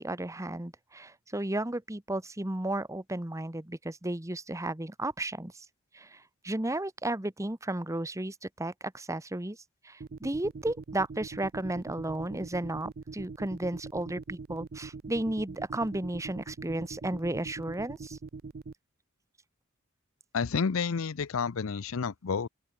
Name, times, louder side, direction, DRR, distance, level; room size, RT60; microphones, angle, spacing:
voice 1, 0.0-5.7 5.9-9.6 9.8-18.2, right 1 dB, 15° right, 1.2 m, -34 dB
sound 1, 10.0-18.7, right 4 dB, 45° right, 0.5 m, -42 dB
voice 2, 20.3-22.5, left 5 dB, 75° left, 0.6 m, -30 dB
open air
head